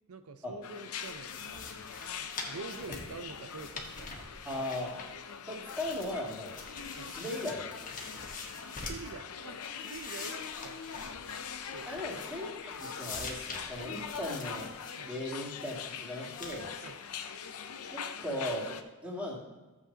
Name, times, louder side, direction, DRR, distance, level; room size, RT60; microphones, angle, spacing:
voice 1, 0.1-1.8 2.5-4.3 7.0-7.1 8.7-10.9 11.7-11.9 15.0-15.1 16.8-17.0, right 4 dB, 90° right, 9 dB, 0.7 m, -46 dB
sound 1, 0.6-18.8, left 7 dB, 80° left, 0.6 m, -43 dB
sound 2, 1.0-5.3 5.5-9.1 9.5-12.5 12.7-15.0 15.4-15.9 16.3-16.6, left 4 dB, 40° left, 1.2 m, -45 dB
voice 2, 4.4-5.0 5.5-6.5 7.2-7.7 11.9-14.7 15.1-16.7 17.9-18.8 19.0-19.4, left 1 dB, 5° right, -5 dB, 2.4 m, -37 dB
14.0 x 7.4 x 2.9 m, 1.1 s
head